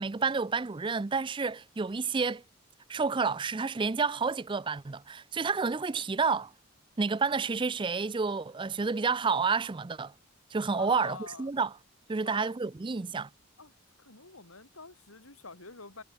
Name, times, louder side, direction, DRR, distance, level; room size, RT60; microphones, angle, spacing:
voice 1, 0.0-2.4 2.9-6.5 7.0-10.1 10.5-11.7 12.1-13.3, right 4 dB, 25° right, 0.4 m, -30 dB
voice 2, 10.7-11.5 12.2-12.5 13.6-13.7 14.0-16.0, left 3 dB, 80° left, 5.3 m, -46 dB
head